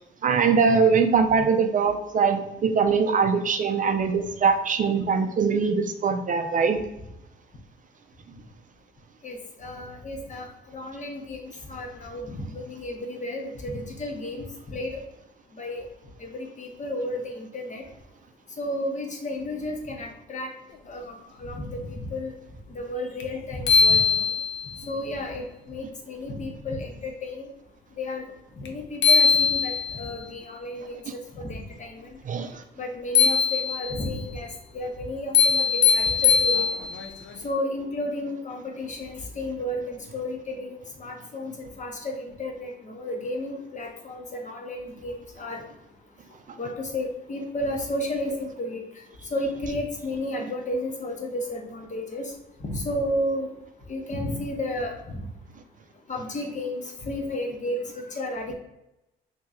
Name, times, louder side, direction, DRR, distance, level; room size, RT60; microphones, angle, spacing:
voice 1, 0.2-6.8 32.3-32.6, right 5 dB, 40° right, 7 dB, 0.4 m, -22 dB
voice 2, 9.2-10.5 10.7-11.4 11.7-15.0 15.6-15.8 16.3-17.8 18.6-20.5 20.9-21.1 21.4-22.3 22.7-24.0 24.9-27.5 28.0-28.2 28.6-31.0 31.4-32.0 32.8-34.5 34.7-36.6 37.4-45.6 46.6-48.8 49.3-52.2 52.6-53.5 53.9-55.2 56.1-58.5, left 1 dB, 40° left, 2 dB, 0.9 m, -32 dB
sound 1, 23.2-23.3 23.7-24.8 28.7-28.8 29.0-30.1 33.2-34.1 35.3-37.1, left 6 dB, 70° left, 0.6 m, -20 dB
3.0 x 2.8 x 3.6 m, 0.91 s
cardioid pair, 90°, 20 cm